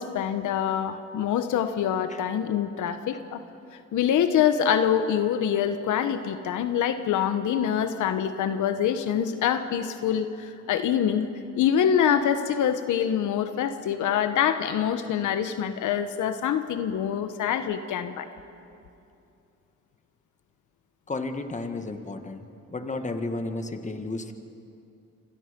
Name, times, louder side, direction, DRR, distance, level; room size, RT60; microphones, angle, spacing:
voice 1, 0.0-3.4 3.9-11.3 11.5-18.3, left 9 dB, 80° left, 9 dB, 1.2 m, -25 dB
voice 2, 21.1-22.5 22.7-24.3, left 2 dB, 25° left, 7 dB, 1.8 m, -32 dB
28.0 x 25.5 x 5.3 m, 2.7 s
cardioid pair, 90°, 30 cm